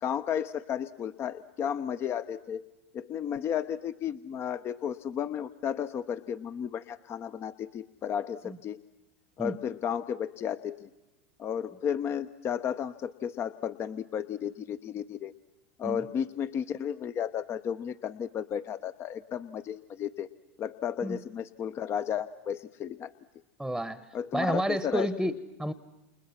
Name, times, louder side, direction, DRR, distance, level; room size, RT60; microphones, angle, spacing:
voice 1, 0.0-2.6 2.9-8.8 9.4-10.9 11.4-15.3 15.8-20.3 20.6-23.1 24.1-25.4, left 8 dB, 35° left, 12 dB, 0.9 m, -33 dB
voice 2, 23.6-24.1 24.3-25.7, right 1 dB, ahead, 15 dB, 1.1 m, -30 dB
29.5 x 29.0 x 5.9 m, 0.98 s
hypercardioid pair, 105°, 7 cm